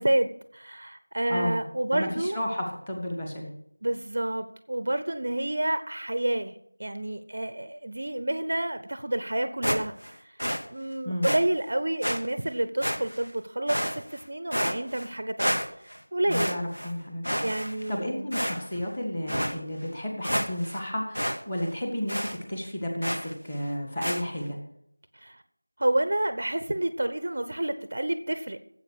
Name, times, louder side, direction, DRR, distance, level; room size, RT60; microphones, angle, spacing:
voice 1, 0.0-2.4 3.8-6.5 6.8-10.0 10.2-15.6 15.8-16.6 17.4-18.4 25.1-25.4 25.8-28.6, right 1 dB, 35° right, 11 dB, 0.7 m, -29 dB
voice 2, 1.3-1.6 1.9-3.5 11.0-11.3 16.3-17.5 17.9-24.6, left 1 dB, 10° left, 2 dB, 1.6 m, -32 dB
sound 1, 9.6-10.1 10.4-10.6 11.2-11.4 12.0-12.2 12.8-13.3 13.7-14.2 14.5-15.1 15.4-16.0 16.3-16.9 17.2-17.9 18.3-18.8 19.3-19.5 19.9-20.0 20.2-20.8 21.2-21.4 21.6-21.7 22.1-22.4 23.0-23.3 24.0-24.2, equal, 80° left, 2.2 m, -29 dB
16.0 x 7.9 x 6.3 m, 0.71 s
figure-of-eight pair, 175°, 0 cm